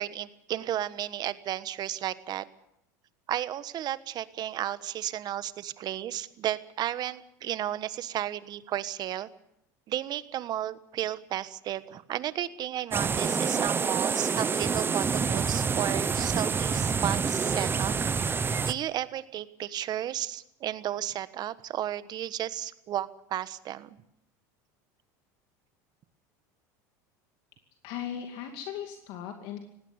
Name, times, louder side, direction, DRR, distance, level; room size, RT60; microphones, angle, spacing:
voice 1, 0.0-2.4 3.3-9.3 9.9-17.9 18.6-24.0, right 12 dB, 45° right, 15 dB, 1.3 m, -33 dB
sound 1, 12.9-18.7, right 5 dB, 25° right, 1.0 m, -27 dB
voice 2, 27.8-29.6, left 9 dB, 65° left, 4 dB, 2.5 m, -37 dB
18.5 x 16.5 x 9.6 m, 0.79 s
supercardioid pair, 100°, 10 cm